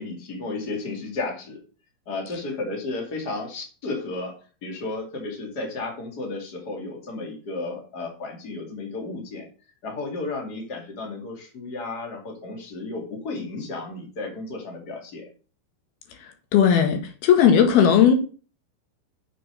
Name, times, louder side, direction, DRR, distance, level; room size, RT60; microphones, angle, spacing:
voice 1, 0.0-1.6 2.1-9.5 9.8-15.3 17.5-17.6, left 3 dB, 30° left, 2 dB, 2.7 m, -33 dB
voice 2, 16.5-18.2, left 8 dB, 80° left, 6 dB, 3.5 m, -17 dB
7.6 x 7.0 x 6.6 m, 0.37 s
omnidirectional pair, 4.4 m